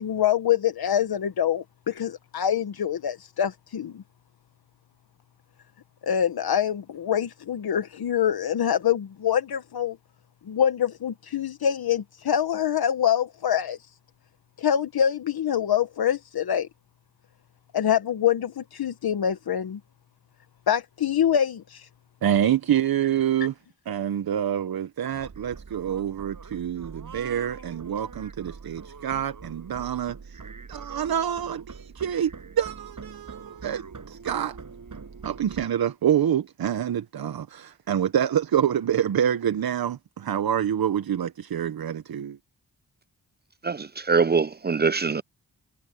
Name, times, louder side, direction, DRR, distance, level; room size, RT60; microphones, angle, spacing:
voice 1, 0.0-4.0 6.0-10.0 10.5-13.8 14.6-16.7 17.7-19.8 20.7-21.9, left 9 dB, 80° left, 1.1 m, -25 dB
voice 2, 22.2-23.5 23.9-30.4 30.7-34.6 35.2-42.4, right 9 dB, 75° right, 0.9 m, -26 dB
sound 1, 25.1-35.7, right 5 dB, 55° right, 6.9 m, -43 dB
voice 3, 43.6-45.2, right 5 dB, 30° right, 0.4 m, -23 dB
cardioid pair, 65°, 37 cm